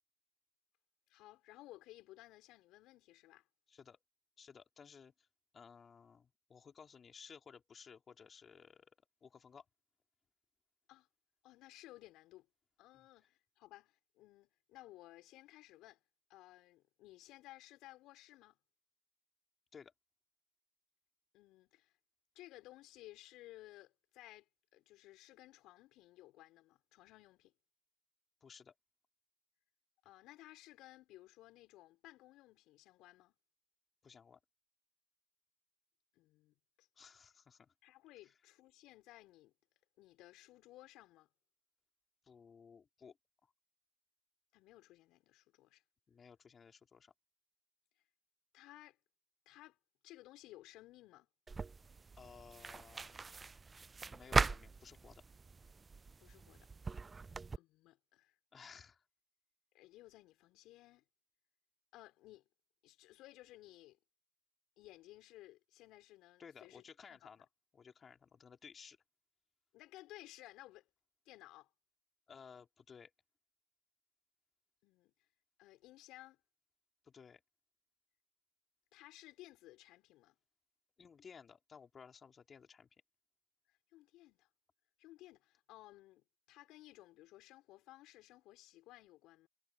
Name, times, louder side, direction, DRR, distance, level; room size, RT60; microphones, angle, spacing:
voice 1, 1.1-3.5 10.9-11.1 11.4-12.5 12.8-16.0 16.3-18.6 21.3-22.0 22.4-27.5 30.0-33.4 36.1-36.9 37.8-39.5 40.0-41.3 44.5-45.8 48.5-49.0 49.5-49.8 50.0-51.3 56.2-57.1 57.6-58.4 59.7-61.0 61.9-62.5 62.8-64.0 64.8-66.8 67.1-67.3 69.7-70.9 71.3-71.7 74.8-75.3 75.6-76.4 78.9-80.4 83.7-84.5 85.0-89.5, left 17 dB, 80° left, 5.3 m, -58 dB
voice 2, 3.7-4.0 4.4-5.3 5.5-9.6 12.9-13.1 19.7-19.9 28.4-28.7 34.0-34.4 37.0-37.7 38.2-38.3 42.2-43.2 46.1-47.1 52.2-53.2 54.1-55.3 58.5-59.0 66.4-67.5 67.7-69.0 72.3-73.1 77.0-77.4 81.0-82.9, left 6 dB, 55° left, 4.0 m, -57 dB
sound 1, 51.5-57.6, right 4 dB, 40° right, 0.4 m, -39 dB
hypercardioid pair, 45°, 0 cm